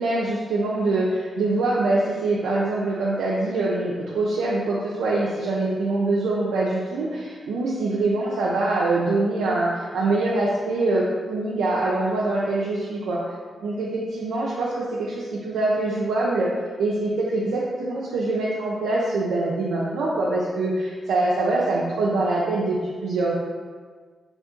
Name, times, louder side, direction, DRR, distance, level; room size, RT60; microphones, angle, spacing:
voice 1, 0.0-13.2 13.6-16.5 16.8-23.3, right 2 dB, 90° right, -6 dB, 0.4 m, -24 dB
3.1 x 2.6 x 3.6 m, 1.5 s
supercardioid pair, 55°, 0 cm